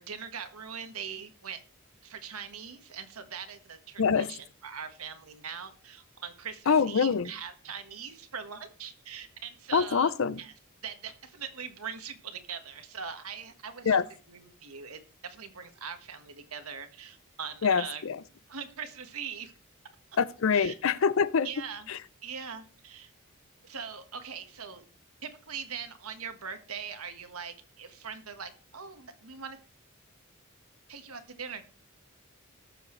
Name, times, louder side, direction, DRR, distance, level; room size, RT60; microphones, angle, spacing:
voice 1, 0.0-1.6 2.0-10.1 10.4-10.5 10.8-14.0 14.3-18.0 18.5-19.5 20.5-20.8 21.4-21.9 22.2-23.1 23.6-24.8 25.2-29.6 30.9-31.6, right 7 dB, 85° right, 1.5 m, -41 dB
voice 2, 4.0-4.3 6.7-7.3 9.7-10.4 13.9-14.1 17.6-18.2 20.2-21.5 21.9-22.0, left 6 dB, 65° left, 0.5 m, -25 dB
19.0 x 7.1 x 3.2 m
head